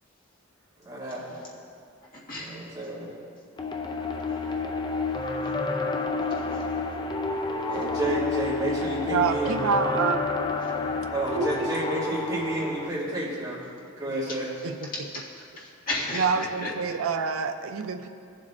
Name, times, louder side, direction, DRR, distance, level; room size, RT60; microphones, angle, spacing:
voice 1, 0.8-1.4 2.4-3.1 7.7-10.0 11.1-13.6 13.9-14.5, right 1 dB, 20° right, -9 dB, 2.5 m, -30 dB
voice 2, 2.3-2.6 5.1-5.8 14.9-15.3 15.6-17.0, left 2 dB, 40° left, -6 dB, 1.9 m, -35 dB
sound 1, 3.6-12.9, left 3 dB, 20° left, 0.4 m, -29 dB
voice 3, 9.1-10.2 11.3-11.7 14.6-14.7 16.1-18.1, right 5 dB, 75° right, 8 dB, 0.5 m, -27 dB
18.0 x 7.4 x 2.5 m, 2.5 s
head